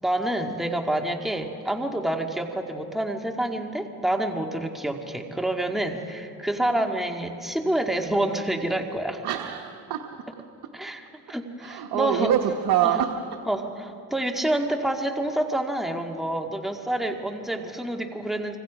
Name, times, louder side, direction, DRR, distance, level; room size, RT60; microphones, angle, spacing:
voice 1, 0.0-9.2 10.7-12.4 12.8-13.0 13.5-18.6, right 1 dB, ahead, 3 dB, 1.9 m, -28 dB
voice 2, 9.2-10.1 11.6-13.1, right 10 dB, 70° right, 4 dB, 1.3 m, -25 dB
26.0 x 25.5 x 5.1 m, 2.6 s
supercardioid pair, 75°, 39 cm